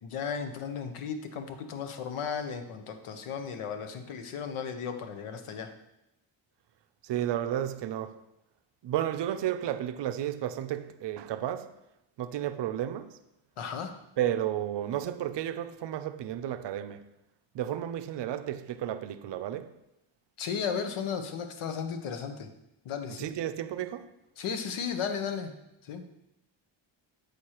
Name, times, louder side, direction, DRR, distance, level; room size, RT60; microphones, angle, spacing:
voice 1, 0.0-5.7 13.6-13.9 20.4-22.5 22.8-23.3 24.4-25.5 25.8-26.0, left 6 dB, 85° left, 0.9 m, -35 dB
voice 2, 7.0-8.2 8.8-11.7 12.2-13.1 14.2-17.0 17.5-19.7 23.2-24.1, right 11 dB, 60° right, 0.5 m, -32 dB
8.2 x 6.3 x 2.9 m
wide cardioid pair, 135°, 49 cm